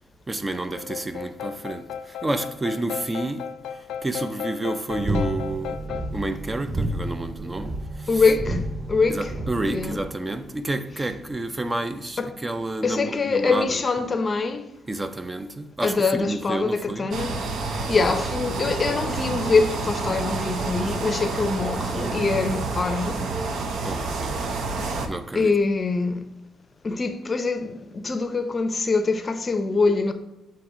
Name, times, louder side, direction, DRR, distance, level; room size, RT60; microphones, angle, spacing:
voice 1, 0.3-5.8 6.1-8.2 9.1-13.8 14.9-17.1 23.8-24.5 25.1-25.5, right 2 dB, 20° right, 0.4 m, -30 dB
sound 1, 0.8-6.1, left 8 dB, 90° left, 0.3 m, -35 dB
sound 2, 4.9-10.0, right 1 dB, 35° right, 1.7 m, -30 dB
voice 2, 8.1-8.6 8.9-9.3 9.7-10.0 12.2-12.3 12.8-14.7 15.8-17.4 17.9-23.2 25.3-26.2 26.8-30.1, left 4 dB, 35° left, 0.6 m, -24 dB
sound 3, 17.1-25.1, right 3 dB, 65° right, 0.7 m, -29 dB
7.5 x 2.9 x 4.8 m
cardioid pair, 100°, 0 cm